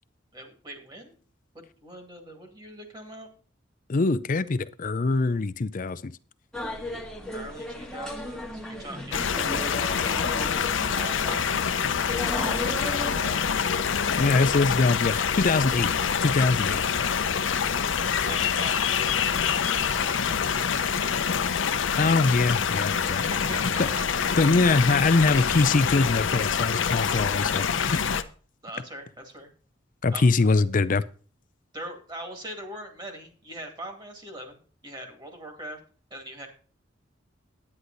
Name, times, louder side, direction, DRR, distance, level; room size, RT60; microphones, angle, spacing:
voice 1, 0.3-1.2 1.5-3.3 6.8-6.9 7.3-10.3 10.9-13.3 18.2-21.1 23.0-24.4 28.6-29.5 30.1-30.3 31.7-35.8 36.1-36.5, right 1 dB, 25° right, 4 dB, 2.2 m, -42 dB
voice 2, 3.9-6.1 14.2-15.9 16.2-16.8 21.9-23.2 23.8-23.9 24.4-28.0 30.0-31.0, left 3 dB, 45° left, 15 dB, 0.5 m, -23 dB
sound 1, 6.5-13.5, left 1 dB, ahead, 1.4 m, -36 dB
sound 2, 9.1-28.2, left 7 dB, 80° left, 0.7 m, -26 dB
9.9 x 9.7 x 4.0 m, 0.40 s
head